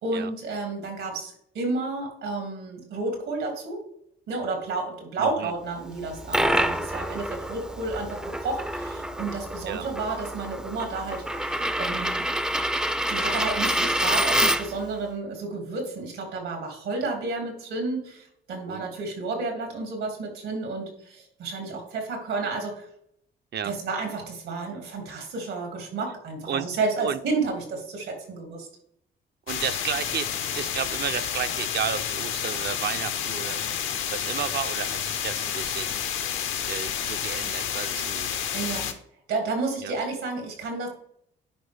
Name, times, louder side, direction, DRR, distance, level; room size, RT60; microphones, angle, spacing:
voice 1, 0.0-3.8 4.3-12.3 13.1-22.9 23.6-28.7 38.5-38.9 39.3-40.9, right 3 dB, 85° right, 2 dB, 2.5 m, -31 dB
voice 2, 5.2-5.5 9.7-9.8 18.7-18.9 23.5-23.7 26.5-26.7 27.0-27.2 29.5-33.6 34.1-36.2 36.6-38.4 39.8-39.9, right 8 dB, 60° right, 10 dB, 0.6 m, -32 dB
Coin (dropping), 6.0-14.9, right 1 dB, 5° right, 0.4 m, -27 dB
sound 1, 29.5-38.9, left 9 dB, 80° left, 0.8 m, -30 dB
10.0 x 4.4 x 3.4 m, 0.70 s
cardioid pair, 90°, 20 cm